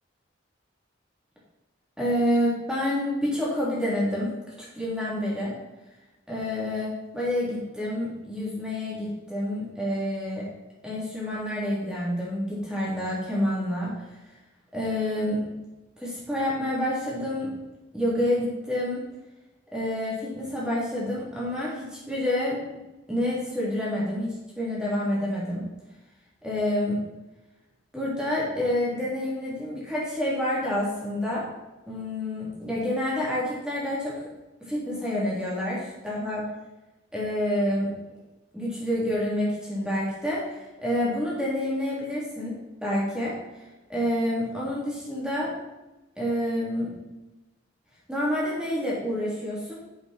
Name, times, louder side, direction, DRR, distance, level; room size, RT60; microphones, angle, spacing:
voice 1, 2.0-4.3 4.6-5.5 6.3-10.5 10.8-13.9 14.7-15.4 16.0-17.5 17.9-19.0 19.7-22.8 23.1-25.7 26.4-27.0 27.9-31.5 31.9-34.2 34.6-36.4 37.1-37.9 38.5-42.6 42.8-43.3 43.9-45.5 46.2-46.9 48.1-49.7, left 1 dB, 5° right, -7 dB, 3.6 m, -28 dB
9.1 x 7.7 x 4.6 m, 1.1 s
head